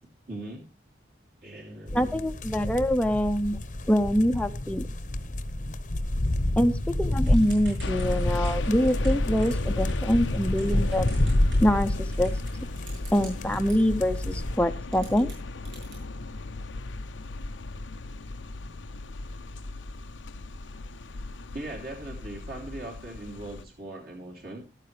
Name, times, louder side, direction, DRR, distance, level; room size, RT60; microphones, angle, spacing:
voice 1, 0.3-0.6 1.4-2.2 6.5-6.6 21.5-24.6, right 1 dB, 50° right, -1 dB, 3.0 m, -39 dB
sound 1, 1.9-14.6, left 1 dB, 40° left, 0.9 m, -29 dB
voice 2, 1.9-3.6 3.9-4.9 6.6-11.1 11.6-12.3 13.1-15.3, equal, 5° left, 7 dB, 0.7 m, -25 dB
Typing / Telephone, 7.2-13.8 14.6-14.7 14.9-16.0, right 3 dB, 80° right, 7.1 m, -49 dB
sound 2, 7.8-23.7, left 2 dB, 85° left, 0.7 m, -36 dB
14.5 x 12.5 x 3.3 m, 0.29 s
head